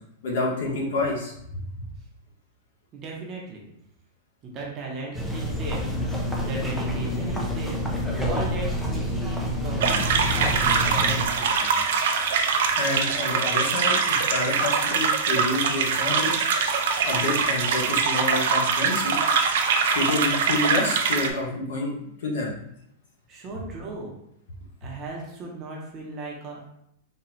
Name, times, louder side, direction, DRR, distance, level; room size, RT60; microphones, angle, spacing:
voice 1, 0.2-1.6 12.8-16.4 17.1-19.2 19.9-21.9 22.2-22.5, left 2 dB, 70° left, -3 dB, 1.3 m, -28 dB
voice 2, 2.9-3.7 4.4-5.8 6.3-7.8 8.2-11.8 23.3-24.2 24.8-26.7, right 2 dB, 25° right, -2 dB, 0.8 m, -37 dB
sound 1, 5.1-11.3, equal, ahead, 0.5 m, -28 dB
sound 2, 9.8-21.3, right 5 dB, 65° right, 0.5 m, -23 dB
4.3 x 2.3 x 4.0 m, 0.76 s
supercardioid pair, 170°, 0 cm